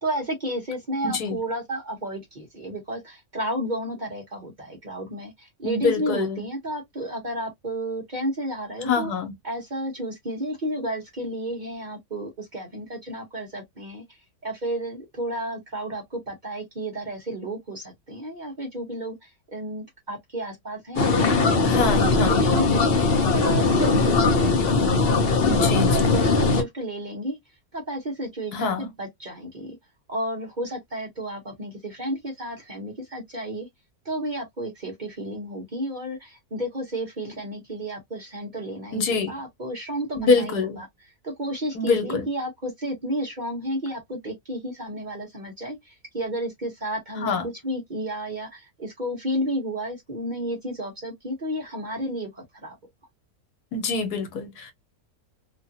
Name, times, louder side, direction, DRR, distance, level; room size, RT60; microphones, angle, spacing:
voice 1, 0.0-9.1 9.4-22.8 23.3-24.8 25.9-27.4 27.7-29.8 30.1-33.7 34.0-40.9 41.2-47.4 47.6-52.8, right 1 dB, 35° right, 0.9 m, -32 dB
voice 2, 1.0-1.4 5.6-6.4 8.8-9.3 21.6-22.4 25.5-26.1 28.5-28.9 38.9-39.3 40.2-40.8 41.7-42.3 47.2-47.5 53.7-54.7, left 4 dB, 85° left, 1.4 m, -25 dB
sound 1, 21.0-26.6, left 3 dB, 50° left, 0.8 m, -20 dB
3.0 x 2.4 x 2.7 m
omnidirectional pair, 1.6 m